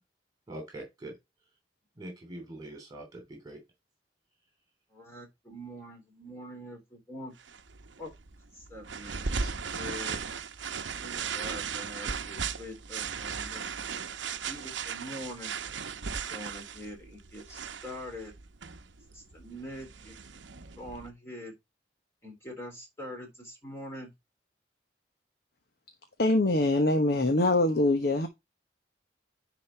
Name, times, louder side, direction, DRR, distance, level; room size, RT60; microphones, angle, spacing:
voice 1, 0.5-1.2 2.0-3.6, right 1 dB, 20° right, 3.1 m, -43 dB
voice 2, 4.9-7.3 8.0-8.1 8.5-10.2 11.0-13.6 14.4-15.6 16.3-18.3 19.1-20.2 20.8-21.5 22.2-24.1, equal, 15° left, 3.6 m, -44 dB
sound 1, 7.4-21.1, right 6 dB, 75° right, 0.8 m, -37 dB
voice 3, 26.2-28.3, left 2 dB, 55° left, 1.0 m, -24 dB
9.9 x 4.2 x 4.4 m
head